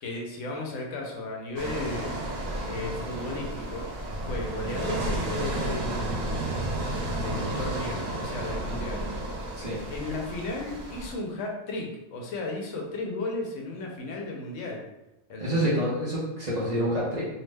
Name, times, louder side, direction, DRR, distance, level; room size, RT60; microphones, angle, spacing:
voice 1, 0.0-2.1 2.7-3.9 4.2-6.5 7.2-9.0 9.9-14.8 15.3-15.7, left 2 dB, 75° left, 0 dB, 0.9 m, -35 dB
sound 1, 1.6-11.1, right 1 dB, 75° right, 0.4 m, -32 dB
voice 2, 15.4-17.3, equal, 40° right, -8 dB, 0.7 m, -27 dB
2.7 x 2.1 x 3.2 m, 0.92 s
omnidirectional pair, 1.3 m